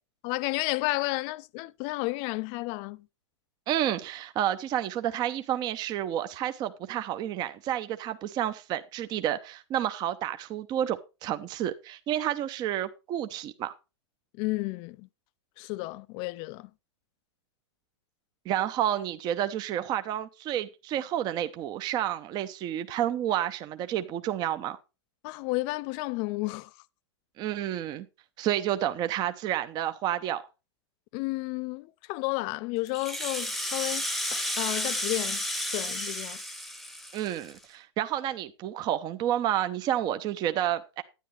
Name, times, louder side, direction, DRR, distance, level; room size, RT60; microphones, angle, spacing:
voice 1, 0.2-3.0 14.4-15.1 15.6-16.7 25.2-26.7 31.1-34.1 34.3-35.4 35.7-36.4, left 21 dB, 35° left, 0.4 m, -32 dB
voice 2, 3.7-13.7 18.5-24.8 27.4-28.1 28.4-30.4 37.1-41.0, right 11 dB, 25° right, 0.7 m, -30 dB
Rattle (instrument), 32.9-37.6, left 1 dB, ahead, 0.9 m, -32 dB
10.0 x 10.0 x 3.2 m
hypercardioid pair, 115°, 15 cm